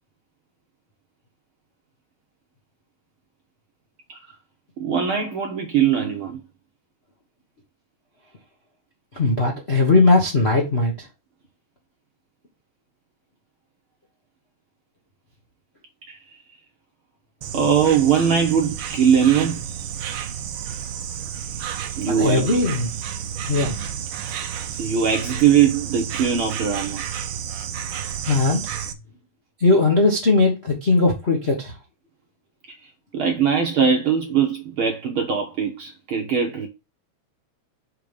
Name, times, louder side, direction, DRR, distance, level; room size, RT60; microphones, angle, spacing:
voice 1, 4.8-6.4 16.1-16.2 17.5-19.6 22.0-22.6 24.8-27.0 32.7-32.8 33.1-36.7, right 7 dB, 60° right, 1.4 m, -21 dB
voice 2, 9.1-11.1 22.1-22.9 23.4-23.8 28.3-28.6 29.6-31.7, left 3 dB, 40° left, 0.8 m, -19 dB
Insect, 17.4-28.9, right 8 dB, 90° right, 1.1 m, -31 dB
5.1 x 4.8 x 5.3 m
omnidirectional pair, 3.3 m